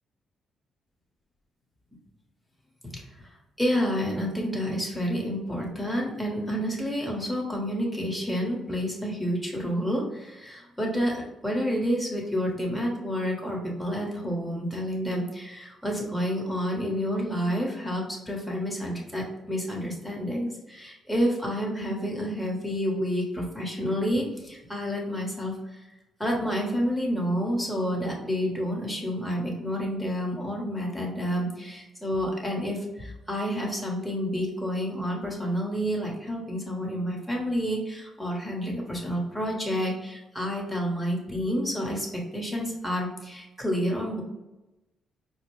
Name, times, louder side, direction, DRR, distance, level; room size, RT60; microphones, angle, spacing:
voice 1, 3.6-25.6 26.2-44.2, equal, ahead, -2 dB, 1.2 m, -29 dB
4.7 x 2.1 x 3.2 m, 1.0 s
cardioid pair, 90°, 0 cm